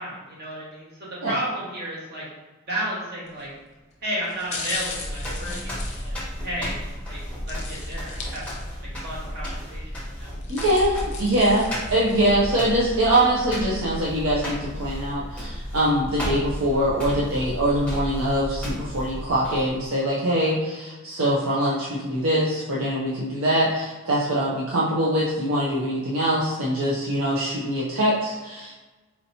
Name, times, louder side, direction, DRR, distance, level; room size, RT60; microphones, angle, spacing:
voice 1, 0.0-2.2 2.7-3.5 4.0-7.2 7.4-7.5 7.9-8.4 8.8-9.9 10.2-10.3, equal, 45° right, -6 dB, 1.3 m, -32 dB
sound 1, 3.3-3.6 4.2-6.8 7.5-8.9 9.3-9.4 10.2-12.4 12.8-12.9, left 3 dB, 30° left, 0.6 m, -36 dB
sound 2, 4.8-19.9, equal, 5° left, 0.9 m, -33 dB
voice 2, 10.5-28.7, right 1 dB, 70° right, -6 dB, 0.6 m, -23 dB
4.4 x 2.8 x 2.7 m, 1.2 s
head